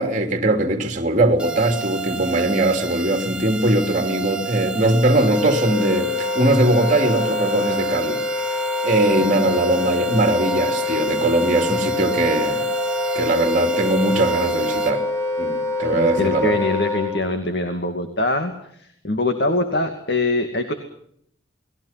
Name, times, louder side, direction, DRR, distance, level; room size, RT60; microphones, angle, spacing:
voice 1, 0.0-8.2 8.5-8.6 8.8-12.7 13.1-15.0 15.4-16.6, right 1 dB, 40° right, 3.1 m, -20 dB
sound 1, 1.4-14.9, right 6 dB, 5° right, 3.3 m, -31 dB
Wind instrument woodwind instrument, 5.2-17.2, left 3 dB, 15° left, 5.2 m, -25 dB
voice 2, 15.9-20.7, left 2 dB, 55° left, 2.4 m, -23 dB
29.5 x 20.5 x 5.9 m
head